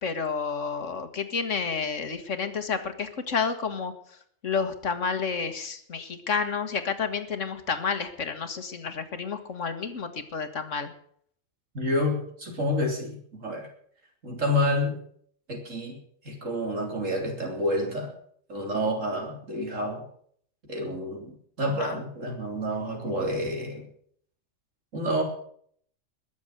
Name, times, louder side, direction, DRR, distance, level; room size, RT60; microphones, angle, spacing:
voice 1, 0.0-3.9 4.4-10.9 21.7-22.0, left 5 dB, 70° left, 9 dB, 1.9 m, -30 dB
voice 2, 11.7-13.7 14.2-15.0 15.5-16.0 16.2-18.1 18.5-20.0 20.7-23.9 24.9-25.2, left 1 dB, 75° right, 1 dB, 3.9 m, -29 dB
21.5 x 7.4 x 8.0 m, 0.64 s
omnidirectional pair, 1.4 m